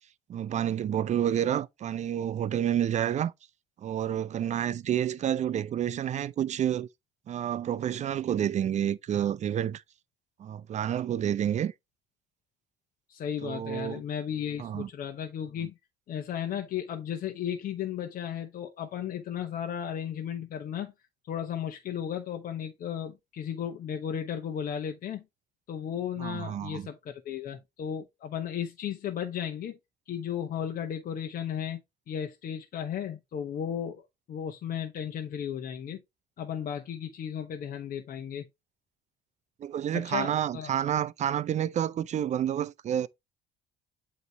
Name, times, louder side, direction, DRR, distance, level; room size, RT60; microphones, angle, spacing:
voice 1, 0.3-3.3 3.8-6.9 7.3-9.8 10.4-11.7 13.4-14.0 14.6-14.9 26.2-26.9 39.6-43.1, right 10 dB, 45° right, 0.5 m, -29 dB
voice 2, 13.1-15.7 16.1-20.9 21.3-25.2 25.7-29.8 30.1-31.8 32.1-36.0 36.4-38.5 39.9-40.7, left 9 dB, 55° left, 1.0 m, -35 dB
8.2 x 3.1 x 4.4 m
cardioid pair, 110°, 17 cm